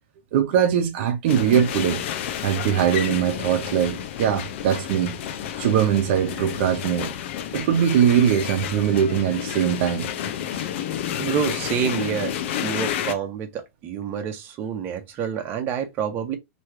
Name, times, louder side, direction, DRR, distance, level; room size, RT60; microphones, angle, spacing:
voice 1, 0.3-2.0 2.4-5.1 5.6-7.1 7.5-10.1 10.5-10.6, right 9 dB, 55° right, 0.8 m, -21 dB
sound 1, 1.3-13.1, left 10 dB, 60° left, 0.6 m, -30 dB
voice 2, 11.2-12.3 12.6-16.4, right 7 dB, 30° right, 0.9 m, -27 dB
3.1 x 3.0 x 4.6 m
supercardioid pair, 150°, 7 cm